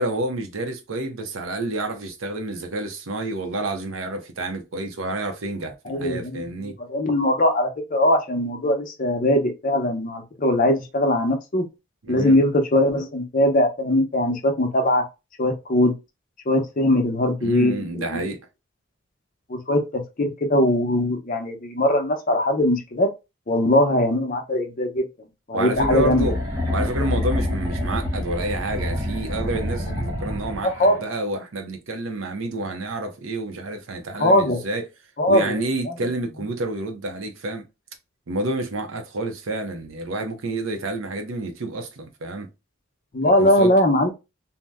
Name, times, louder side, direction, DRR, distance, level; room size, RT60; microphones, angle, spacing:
voice 1, 0.0-6.8 12.0-12.4 17.4-18.4 25.5-26.4 26.7-34.8 35.3-37.6 38.3-42.5 43.2-43.7, right 2 dB, 75° right, 0.7 m, -29 dB
voice 2, 5.9-11.6 12.1-15.0 15.4-15.9 16.5-18.2 19.5-23.1 23.5-25.0 25.5-26.3 30.6-31.1 34.2-34.6 35.2-35.6 35.9-36.0 43.1-44.1, left 1 dB, 40° left, 0.6 m, -21 dB
sound 1, 25.7-31.0, left 1 dB, 15° right, 0.8 m, -27 dB
2.7 x 2.1 x 3.4 m
head